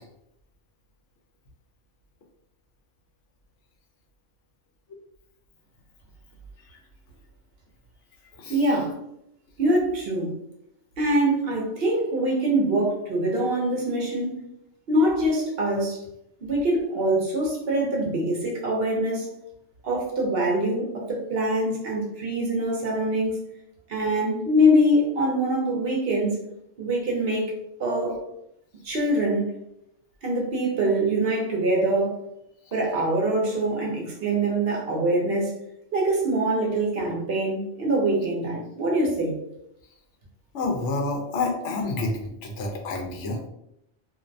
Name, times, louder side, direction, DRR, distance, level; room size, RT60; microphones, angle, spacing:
voice 1, 8.5-9.0 9.6-10.3 11.0-14.4 14.9-16.0 16.4-19.3 19.8-23.4 23.9-26.4 26.8-27.5 27.8-28.2 28.8-29.5 30.2-32.2 32.7-35.5 35.9-39.4, right 1 dB, 60° right, -2 dB, 0.8 m, -24 dB
voice 2, 40.5-43.4, left 3 dB, 75° left, 1 dB, 0.9 m, -28 dB
2.5 x 2.0 x 2.5 m, 0.79 s
omnidirectional pair, 1.3 m